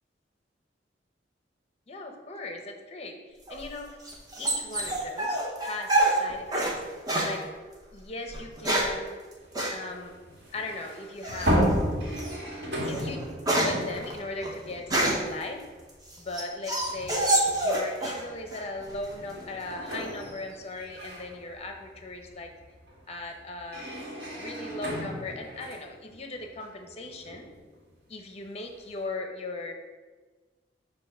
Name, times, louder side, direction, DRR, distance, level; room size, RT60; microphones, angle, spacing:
voice 1, 1.9-3.2 3.5-3.9 4.4-6.7 7.2-7.4 7.9-9.1 9.7-10.1 10.5-11.6 12.8-13.2 13.6-15.6 16.2-17.3 17.6-22.5 23.1-23.9 24.4-27.5 28.1-29.8, left 2 dB, 35° left, 4 dB, 0.7 m, -38 dB
sound 1, 3.5-6.8 7.1-7.4 8.3-9.0 9.5-9.8 11.2-11.6 12.2-12.3 12.7-15.4 15.9-18.2 18.5-19.1, right 1 dB, 20° right, 0.9 m, -27 dB
sound 2, 9.4-15.7 16.1-16.3 17.4-17.6 18.0-27.8, equal, 60° right, 1.6 m, -33 dB
7.0 x 2.6 x 5.5 m, 1.4 s
head